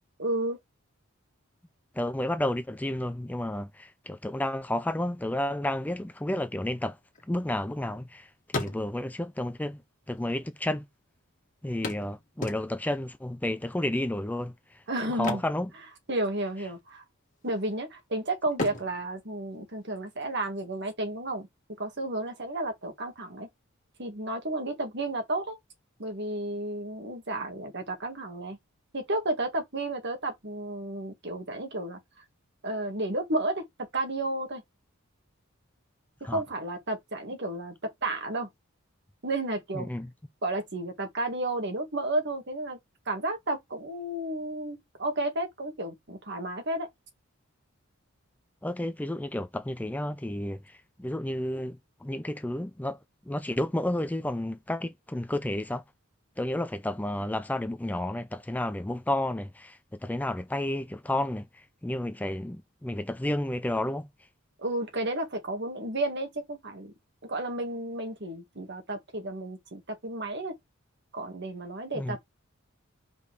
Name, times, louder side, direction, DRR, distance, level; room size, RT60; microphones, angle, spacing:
voice 1, 0.2-0.6 14.9-15.4 16.1-17.0 17.4-21.5 21.8-23.5 24.0-25.6 26.0-28.6 28.9-32.0 32.6-34.6 36.2-38.5 39.2-39.9 40.4-42.8 43.1-46.9 64.6-66.9 67.3-70.6 71.1-72.2, right 2 dB, 55° right, 1.9 m, -32 dB
voice 2, 2.0-7.0 7.3-9.8 10.1-10.8 11.6-14.8 15.2-15.7 36.3-36.4 39.7-40.1 48.6-53.0 53.3-55.8 56.4-64.1 71.9-72.2, left 1 dB, 10° left, 0.4 m, -31 dB
sound 1, 7.0-8.1 8.4-9.3 10.2-10.3 10.5-10.6 11.8-13.0 15.1-16.4 16.6-16.9 17.4-18.0 18.5-20.3 22.2-22.3 22.8-22.9, left 2 dB, 40° left, 1.9 m, -37 dB
5.2 x 4.1 x 4.8 m
head